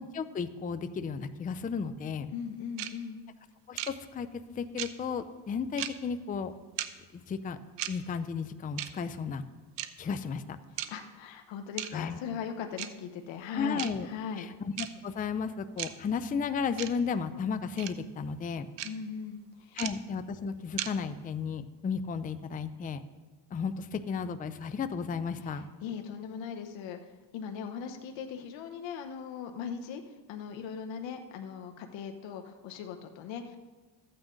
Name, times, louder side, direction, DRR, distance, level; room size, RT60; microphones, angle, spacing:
voice 1, 0.0-2.3 3.7-6.5 7.1-7.6 7.9-9.4 10.0-10.6 11.9-12.2 13.5-14.1 14.4-18.7 19.8-23.0 23.5-25.7, left 6 dB, 20° left, 11 dB, 0.4 m, -34 dB
voice 2, 2.3-3.2 10.7-14.5 18.8-19.8 25.4-33.6, left 6 dB, 75° left, 5 dB, 1.0 m, -39 dB
sound 1, 2.8-2.9 3.8-3.9 4.8-4.9 5.8-5.9 6.8-6.9 7.8-7.9 8.8-8.9 9.8-9.9 10.8-10.9 11.8-11.9 12.8-12.9 13.8-13.9 14.8-14.9 15.8-15.9 16.8-16.9 17.8-17.9 18.8-18.9 19.8-19.9 20.8-20.9, right 13 dB, 70° right, 0.8 m, -34 dB
14.0 x 8.8 x 3.8 m, 1.3 s
cardioid pair, 115°, 46 cm